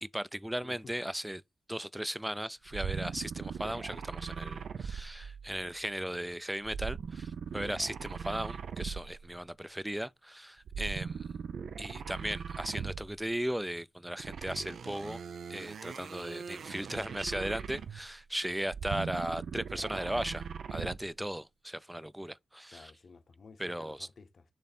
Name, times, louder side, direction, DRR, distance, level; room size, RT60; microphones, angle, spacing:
voice 1, 0.0-1.4 1.7-11.3 11.8-15.2 15.5-22.9 23.6-24.1, right 1 dB, 5° right, 0.4 m, -37 dB
sound 1, 2.7-5.7 6.6-9.3 10.6-13.2 14.2-18.2 18.6-21.1, right 6 dB, 90° right, 0.5 m, -40 dB
voice 2, 22.7-24.4, left 4 dB, 65° left, 0.9 m, -53 dB
7.0 x 3.2 x 4.2 m
cardioid pair, 80°, 0 cm